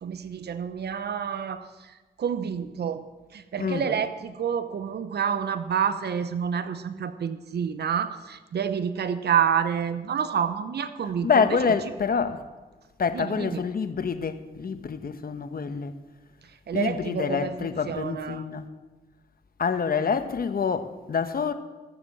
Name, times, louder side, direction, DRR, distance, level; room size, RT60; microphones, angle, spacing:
voice 1, 0.0-11.8 13.1-13.6 16.7-18.4, right 7 dB, 65° right, 0.8 m, -28 dB
voice 2, 11.2-12.4 13.0-15.9 16.7-18.6 19.6-21.5, left 5 dB, 55° left, 1.2 m, -26 dB
14.5 x 7.2 x 7.4 m
supercardioid pair, 50°, 18 cm